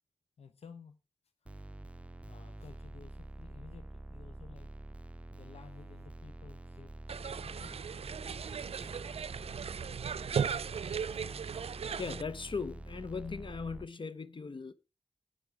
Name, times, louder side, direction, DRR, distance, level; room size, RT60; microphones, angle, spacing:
voice 1, 0.4-1.0 2.3-4.7 5.3-6.9 7.2-7.9, left 5 dB, 90° left, 0.7 m, -54 dB
sound 1, 1.5-13.9, right 1 dB, 10° right, 0.6 m, -47 dB
sound 2, 7.1-12.2, right 7 dB, 80° right, 0.4 m, -37 dB
voice 2, 12.0-14.7, left 5 dB, 55° left, 0.7 m, -38 dB
10.0 x 8.8 x 4.6 m
cardioid pair, 55°, 10 cm